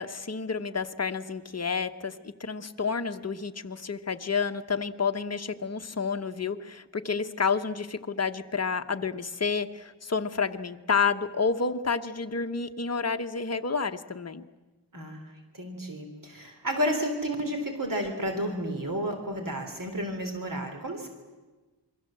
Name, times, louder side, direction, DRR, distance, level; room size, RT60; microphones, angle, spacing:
voice 1, 0.0-14.5, left 5 dB, 35° left, 7 dB, 1.1 m, -30 dB
voice 2, 14.9-15.2 15.5-21.1, equal, 45° right, 4 dB, 3.7 m, -31 dB
28.0 x 23.0 x 7.7 m, 1.2 s
wide cardioid pair, 125°, 45 cm